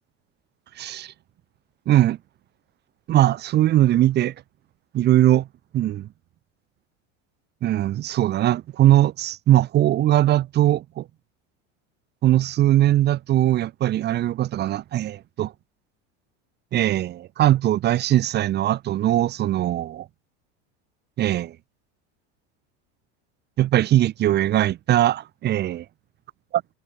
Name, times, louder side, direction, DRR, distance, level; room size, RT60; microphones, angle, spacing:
voice 1, 0.8-1.1 1.9-2.2 3.1-4.3 4.9-5.5 5.7-6.1 7.6-11.0 12.2-15.5 16.7-20.1 21.2-21.5 23.6-25.8, right 13 dB, 30° right, 0.5 m, -20 dB
supercardioid pair, 115°, 33 cm